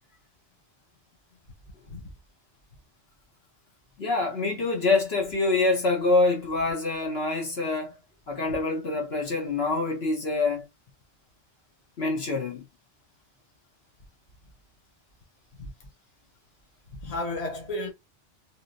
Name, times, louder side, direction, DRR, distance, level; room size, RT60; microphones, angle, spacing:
voice 1, 4.0-7.9 8.3-10.6 12.0-12.6, left 3 dB, 60° left, 1.3 m, -25 dB
voice 2, 17.0-17.9, left 2 dB, 35° left, 1.1 m, -32 dB
3.4 x 2.8 x 2.6 m
omnidirectional pair, 1.2 m